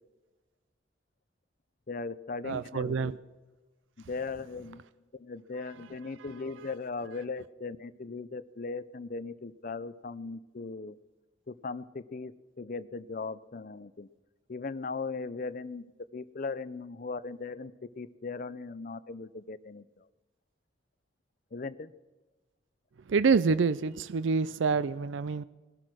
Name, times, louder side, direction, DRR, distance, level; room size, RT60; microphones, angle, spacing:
voice 1, 1.9-3.1 4.1-4.8 5.1-11.0 11.5-12.3 12.6-14.1 14.5-19.8 21.5-21.9, left 4 dB, 45° left, 14 dB, 0.5 m, -38 dB
voice 2, 2.4-3.2 23.1-25.4, right 5 dB, 80° right, 15 dB, 0.5 m, -27 dB
19.5 x 12.0 x 6.2 m, 1.2 s
head